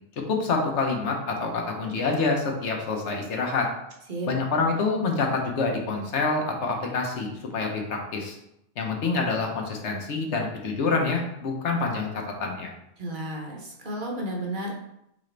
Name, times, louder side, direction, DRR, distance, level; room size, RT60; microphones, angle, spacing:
voice 1, 0.3-3.7 4.3-8.4 8.8-12.7, left 4 dB, 80° left, 1 dB, 1.1 m, -27 dB
voice 2, 13.0-14.8, right 1 dB, 50° right, -1 dB, 0.9 m, -32 dB
4.0 x 3.8 x 3.3 m, 0.81 s
omnidirectional pair, 1.2 m